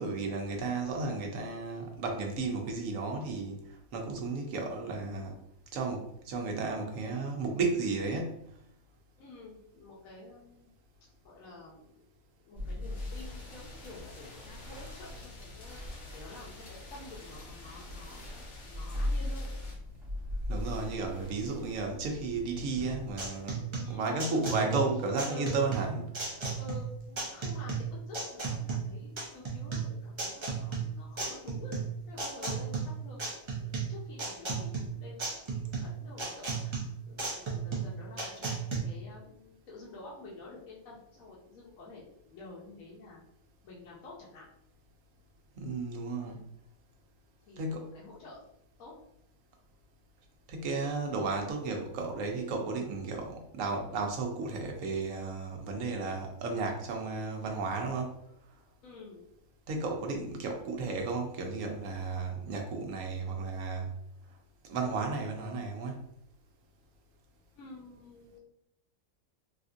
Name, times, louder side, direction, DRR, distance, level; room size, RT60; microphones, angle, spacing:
voice 1, 0.0-3.6 3.9-5.3 5.7-8.4 20.5-23.6 23.9-26.0 45.6-46.4 47.6-47.9 50.5-58.1 59.7-63.9 64.7-66.0, right 3 dB, 70° right, 2 dB, 1.0 m, -33 dB
voice 2, 9.2-10.8 11.2-12.0 12.4-19.6 21.4-21.8 23.7-24.5 24.9-25.6 26.6-31.7 32.1-38.5 38.8-43.2 43.6-44.4 47.4-48.5 48.8-48.9 58.8-59.2 67.6-68.4, left 3 dB, 75° left, -4 dB, 1.1 m, -49 dB
sound 1, 12.6-23.3, left 1 dB, ahead, 0.7 m, -40 dB
sound 2, 12.9-19.7, left 2 dB, 45° left, 0.6 m, -53 dB
sound 3, 22.8-38.8, right 5 dB, 35° right, 0.4 m, -35 dB
3.5 x 2.5 x 2.5 m, 0.76 s
omnidirectional pair, 1.5 m